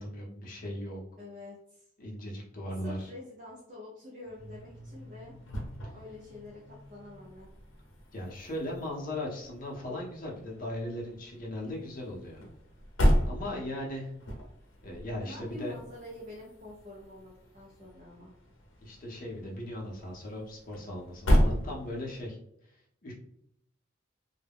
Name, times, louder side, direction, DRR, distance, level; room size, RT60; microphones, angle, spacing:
voice 1, 0.0-1.0 2.0-3.1 8.1-12.4 13.3-14.1 14.8-15.8 18.8-22.4 23.0-23.1, left 1 dB, 45° left, -3 dB, 0.7 m, -38 dB
voice 2, 1.2-1.9 2.8-5.3 5.9-7.5 13.2-13.5 15.2-18.3, left 2 dB, 40° right, -6 dB, 0.6 m, -47 dB
sound 1, 4.2-22.3, equal, 80° left, 0.7 m, -34 dB
2.3 x 2.1 x 3.4 m, 0.76 s
head